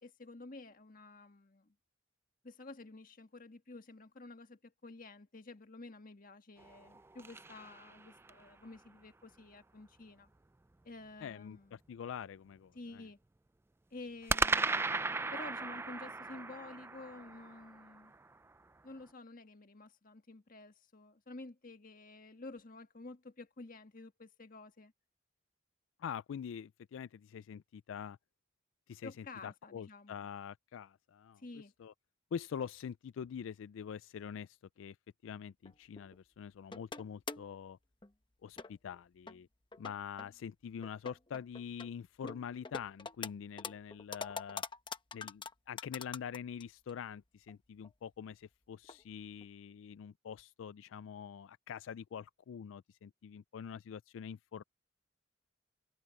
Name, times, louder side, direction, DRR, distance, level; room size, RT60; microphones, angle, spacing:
voice 1, 0.0-1.7 2.4-10.3 10.8-11.8 12.7-13.2 13.9-15.0 15.3-18.1 18.8-24.9 29.0-30.3 31.4-31.7, left 2 dB, 45° left, 1.6 m, -51 dB
sound 1, 6.6-8.5 14.3-18.6, right 3 dB, 10° right, 0.3 m, -36 dB
voice 2, 11.2-13.0 26.0-28.2 28.9-31.4 31.8-31.9 32.3-35.0 35.2-37.8 38.4-39.5 39.8-44.6 45.1-54.6, left 7 dB, 90° left, 0.3 m, -45 dB
sound 2, 35.6-36.2 36.7-37.5 38.0-38.1 38.6-39.0 39.3-39.4 39.7-40.3 40.8-41.9 42.2-43.3 43.6-46.6 46.9-47.0 47.5-47.6 47.8-47.9 48.8-49.0 49.4-49.5, left 4 dB, 25° left, 1.0 m, -44 dB
head